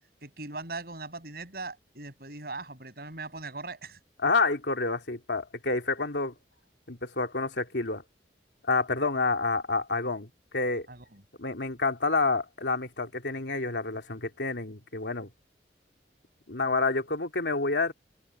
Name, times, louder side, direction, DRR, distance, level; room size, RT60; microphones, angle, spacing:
voice 1, 0.2-4.0 10.9-11.2, right 3 dB, 60° right, 7.7 m, -40 dB
voice 2, 4.2-6.3 6.9-8.0 8.7-10.9 11.4-15.3 16.5-17.9, left 3 dB, 80° left, 2.9 m, -28 dB
open air
head